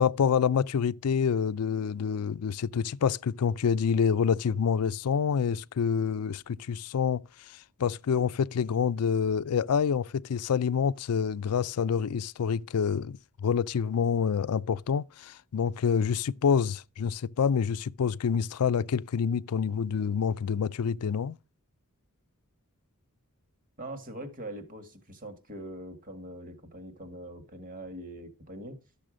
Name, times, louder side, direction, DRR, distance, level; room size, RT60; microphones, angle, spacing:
voice 1, 0.0-21.4, left 6 dB, 90° left, 0.4 m, -27 dB
voice 2, 23.8-28.8, right 1 dB, 35° right, 1.9 m, -42 dB
12.5 x 6.9 x 5.0 m
head